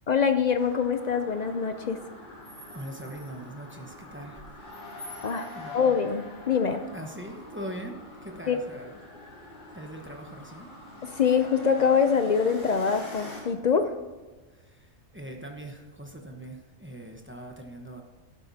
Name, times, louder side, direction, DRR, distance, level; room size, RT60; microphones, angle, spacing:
voice 1, 0.1-2.0 5.2-6.8 8.5-8.6 11.0-13.9, left 6 dB, 70° left, 8 dB, 0.4 m, -24 dB
sound 1, 0.6-13.4, left 2 dB, 90° left, 4.3 m, -45 dB
voice 2, 2.7-4.5 5.0-5.9 6.9-9.0 9.7-10.7 14.5-18.0, right 1 dB, 10° right, 2 dB, 0.9 m, -42 dB
12.0 x 10.5 x 2.8 m, 1.3 s
omnidirectional pair, 1.4 m